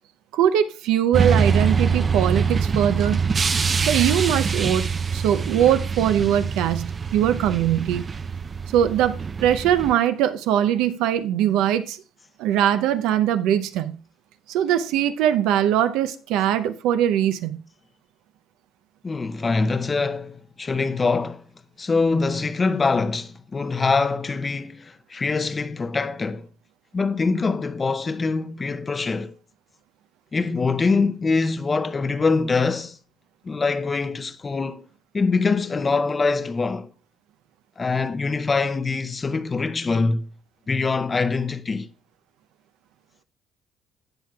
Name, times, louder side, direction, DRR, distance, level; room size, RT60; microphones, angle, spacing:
voice 1, 0.3-3.2 3.9-8.1 8.7-12.0 12.4-14.0 14.5-17.6, right 10 dB, 80° right, 0.5 m, -21 dB
sound 1, 1.1-9.9, right 5 dB, 35° right, 0.5 m, -24 dB
voice 2, 19.0-21.4 21.8-26.5 26.9-29.3 30.3-33.0 33.4-34.9 35.1-36.9 37.8-40.3 40.7-41.9, left 4 dB, 30° left, 0.6 m, -24 dB
15.5 x 5.9 x 2.3 m
supercardioid pair, 80°, 0 cm